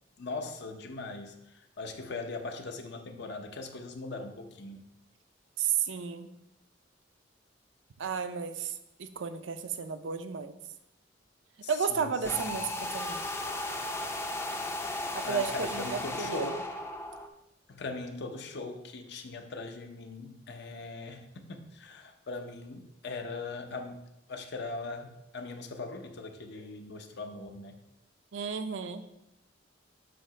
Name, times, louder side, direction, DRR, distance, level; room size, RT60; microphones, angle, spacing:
voice 1, 0.2-1.3 1.8-4.8 11.6-12.6 15.2-16.6 17.7-24.0 24.3-27.7, left 3 dB, 60° left, 5 dB, 0.7 m, -40 dB
voice 2, 5.6-6.3 8.0-8.7 9.0-10.5 11.7-13.2 15.3-16.5 28.3-29.1, right 6 dB, 70° right, 10 dB, 0.5 m, -33 dB
sound 1, 12.2-17.3, left 1 dB, 15° left, 0.5 m, -35 dB
7.6 x 2.9 x 5.7 m, 0.85 s
head